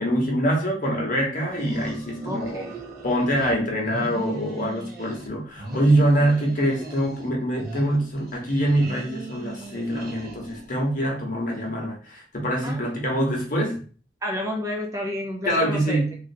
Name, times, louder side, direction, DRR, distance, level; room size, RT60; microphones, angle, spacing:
voice 1, 0.0-2.6 3.0-13.8 15.5-16.2, right 1 dB, 45° left, -1 dB, 1.0 m, -24 dB
sound 1, 1.5-3.5 3.8-5.3 5.5-7.3 7.5-10.7, right 2 dB, 50° right, 1.5 m, -38 dB
voice 2, 2.2-2.7 12.6-12.8 14.2-16.0, left 1 dB, 15° right, 0 dB, 0.5 m, -30 dB
3.2 x 2.5 x 2.6 m, 0.39 s
head